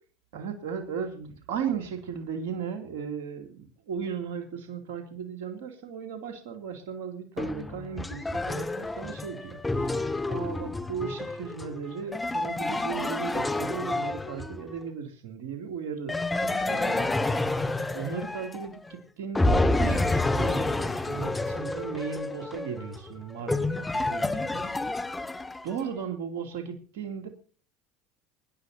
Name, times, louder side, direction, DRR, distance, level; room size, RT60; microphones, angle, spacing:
voice 1, 0.3-25.2 25.6-27.3, right 7 dB, 75° right, 5 dB, 2.7 m, -36 dB
sound 1, 7.4-14.8 16.1-18.9 19.3-25.8, left 2 dB, 15° left, 1.6 m, -29 dB
25.5 x 10.5 x 2.7 m, 0.39 s
hypercardioid pair, 85°, 0 cm